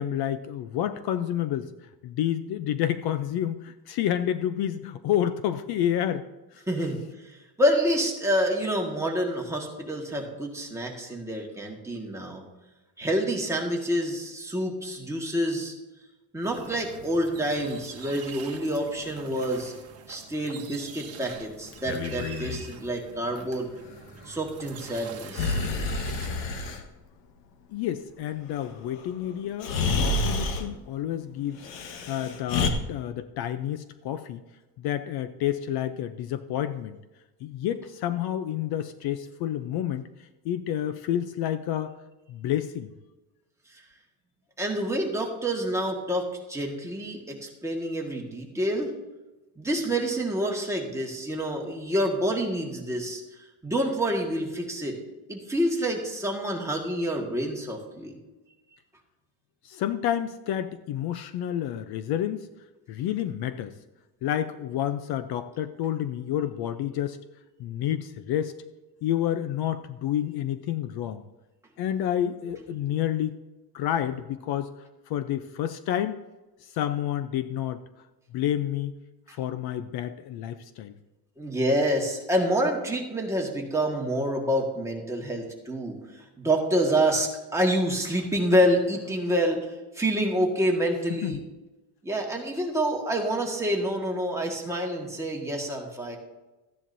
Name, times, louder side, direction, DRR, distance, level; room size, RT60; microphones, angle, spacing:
voice 1, 0.0-1.7 2.0-6.2 6.5-6.6 27.7-31.7 32.1-34.4 34.8-37.0 37.4-42.0 42.3-42.9 59.6-62.5 62.9-63.7 64.2-67.2 67.6-68.5 69.0-71.2 71.8-73.4 73.7-74.7 75.1-76.2 76.6-77.8 78.3-78.9 79.3-80.9 91.2-91.4, left 11 dB, 60° left, 11 dB, 0.7 m, -29 dB
voice 2, 6.7-12.4 13.0-15.7 16.3-19.7 20.1-23.7 24.3-25.6 44.6-48.9 49.6-55.0 55.3-58.2 79.3-79.4 81.4-89.7 89.9-91.4 92.0-96.2, equal, 5° right, -1 dB, 1.7 m, -27 dB
sound 1, 16.4-26.8, right 6 dB, 35° right, 1.3 m, -45 dB
Breathing, 21.7-22.6 25.3-26.8 29.0-29.1 29.6-30.7 31.6-32.7, left 3 dB, 85° left, 1.4 m, -28 dB
14.0 x 10.0 x 2.7 m, 1.1 s
cardioid pair, 140°, 44 cm